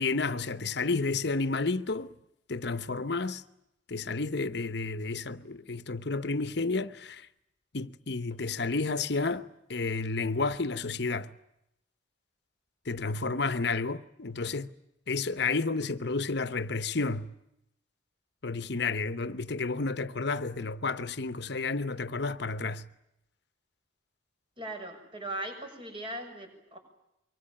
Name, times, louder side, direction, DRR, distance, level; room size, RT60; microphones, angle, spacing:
voice 1, 0.0-2.2 2.5-3.4 3.9-7.3 7.7-11.3 12.9-14.7 15.1-17.3 18.4-22.8, left 3 dB, 60° left, 1.0 m, -31 dB
voice 2, 24.6-26.8, right 1 dB, 30° right, 6.9 m, -39 dB
25.0 x 23.5 x 9.0 m
head